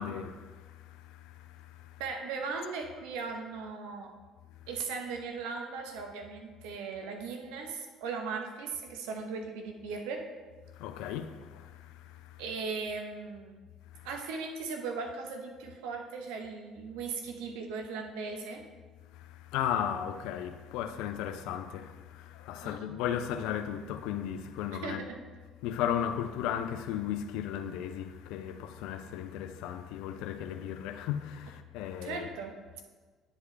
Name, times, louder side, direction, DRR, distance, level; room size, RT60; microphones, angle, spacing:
voice 1, 0.0-2.0 10.7-12.4 13.9-14.1 19.1-25.0 25.6-32.3, left 9 dB, 70° left, 0.4 m, -36 dB
voice 2, 2.0-4.1 4.7-10.2 12.4-13.5 14.0-18.6 22.6-23.0 24.7-25.2 32.0-32.8, right 4 dB, 75° right, 0.8 m, -38 dB
9.5 x 4.9 x 3.2 m
hypercardioid pair, 55°, 0 cm